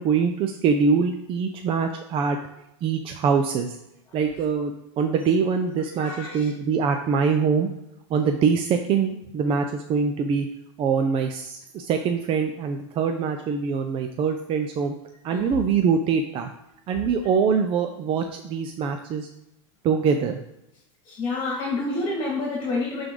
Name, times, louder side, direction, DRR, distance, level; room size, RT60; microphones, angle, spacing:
voice 1, 0.0-2.4 2.8-3.8 4.1-7.7 8.1-10.5 10.8-15.0 15.2-16.5 16.9-19.3 19.8-20.4, right 6 dB, 35° right, 5 dB, 0.6 m, -24 dB
voice 2, 4.1-4.4 6.0-6.5 15.3-15.6 21.0-23.1, left 3 dB, 25° left, -3 dB, 2.2 m, -29 dB
10.0 x 3.4 x 3.8 m, 0.86 s
supercardioid pair, 130°, 16 cm